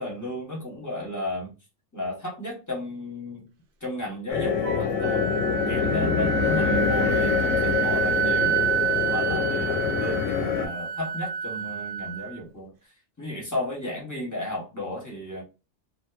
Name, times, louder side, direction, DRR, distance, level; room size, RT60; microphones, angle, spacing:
voice 1, 0.0-1.5 1.9-3.5 3.8-5.3 5.7-8.6 9.0-12.7 13.2-15.4, left 1 dB, 20° left, -2 dB, 0.7 m, -33 dB
sound 1, 4.3-10.7, left 6 dB, 85° left, 1.0 m, -25 dB
Wind instrument woodwind instrument, 4.6-12.4, right 7 dB, 60° right, 0.6 m, -28 dB
2.5 x 2.3 x 2.3 m, 0.29 s
omnidirectional pair, 1.2 m